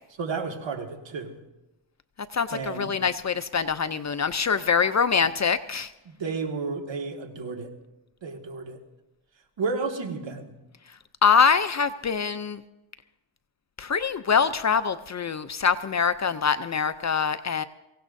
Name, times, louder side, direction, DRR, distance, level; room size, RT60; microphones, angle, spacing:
voice 1, 0.2-1.4 2.5-3.0 6.1-7.7 8.2-8.8 9.6-10.5, right 4 dB, 60° right, 3 dB, 1.9 m, -32 dB
voice 2, 2.3-5.9 11.2-12.6 13.8-17.6, left 6 dB, 35° left, 12 dB, 0.5 m, -24 dB
23.5 x 16.5 x 2.6 m, 0.97 s
cardioid pair, 105°, 49 cm